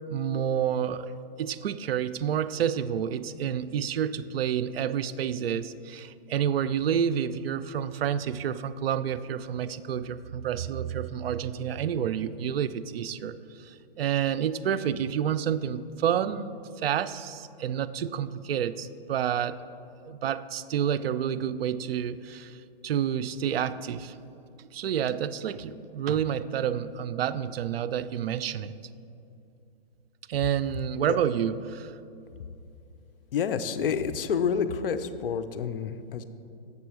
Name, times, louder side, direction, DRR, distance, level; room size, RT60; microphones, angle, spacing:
voice 1, 0.1-1.1 1.4-19.6 20.0-22.6 22.8-24.2 24.6-28.7 30.3-31.9, right 9 dB, 80° right, 13 dB, 0.4 m, -29 dB
voice 2, 33.3-36.2, left 7 dB, 65° left, 11 dB, 0.6 m, -28 dB
7.2 x 6.8 x 4.7 m, 2.7 s
hypercardioid pair, 140°, 29 cm